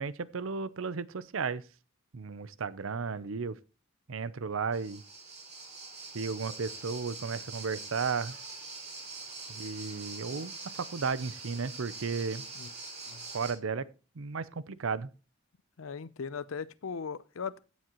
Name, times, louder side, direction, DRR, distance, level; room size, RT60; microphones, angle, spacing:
voice 1, 0.0-1.6 2.1-3.6 4.1-5.0 6.1-8.4 9.5-12.4 13.3-13.9 14.2-15.1, right 5 dB, 75° right, 0.6 m, -34 dB
sound 1, 4.7-13.5, right 3 dB, 35° right, 4.5 m, -44 dB
voice 2, 15.8-17.6, left 6 dB, 85° left, 0.6 m, -38 dB
16.0 x 7.3 x 3.0 m
head